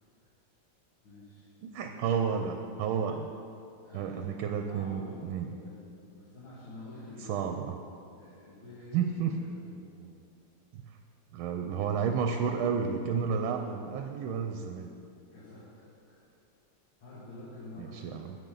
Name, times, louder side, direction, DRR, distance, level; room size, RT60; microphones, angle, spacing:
voice 1, 1.0-2.5 3.0-3.2 3.8-4.3 4.6-7.5 8.1-10.2 15.3-16.3 17.0-18.4, left 2 dB, 70° left, -10 dB, 2.8 m, -49 dB
voice 2, 1.6-3.3 3.9-5.5 7.3-7.7 8.9-9.4 10.7-10.8 11.3-14.9 17.8-18.3, right 6 dB, 85° right, 5 dB, 1.4 m, -31 dB
10.5 x 8.5 x 3.9 m, 2.5 s
omnidirectional pair, 2.2 m